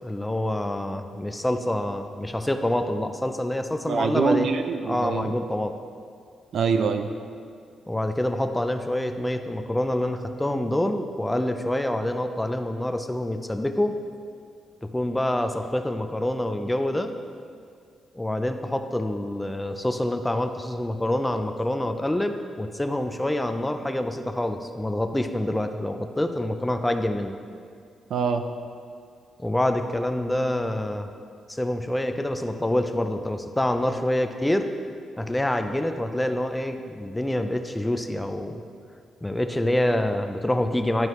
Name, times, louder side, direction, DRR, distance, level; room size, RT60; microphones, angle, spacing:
voice 1, 0.0-4.5 4.8-5.7 7.9-14.0 14.8-17.1 18.1-27.3 29.4-31.1 31.5-34.7 35.2-38.6 39.2-41.1, left 1 dB, 10° left, 7 dB, 0.5 m, -26 dB
voice 2, 3.9-5.3 6.5-7.1 28.1-28.4, right 5 dB, 70° right, 7 dB, 0.5 m, -24 dB
10.5 x 4.6 x 3.2 m, 2.2 s
cardioid pair, 85°, 0 cm